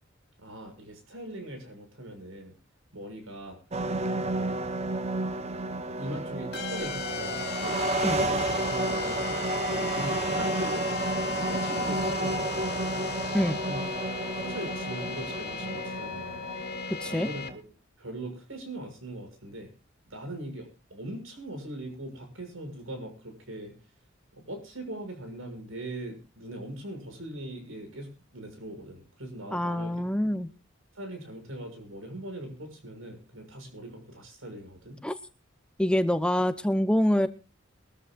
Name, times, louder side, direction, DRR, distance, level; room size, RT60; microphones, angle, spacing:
voice 1, 0.4-2.5 2.9-3.6 4.1-4.5 6.0-9.2 9.7-13.1 13.7-13.8 14.4-16.4 17.1-17.6 18.0-19.7 20.1-23.7 24.3-30.0 30.9-35.0, right 1 dB, 90° right, 5 dB, 6.6 m, -40 dB
sound 1, 3.7-17.6, right 2 dB, 30° right, 0.9 m, -31 dB
sound 2, 6.5-17.5, left 6 dB, 50° left, 2.4 m, -36 dB
voice 2, 29.5-30.5 35.0-35.1 35.8-37.3, left 1 dB, 5° left, 10 dB, 0.6 m, -25 dB
22.5 x 14.0 x 2.5 m, 0.33 s
head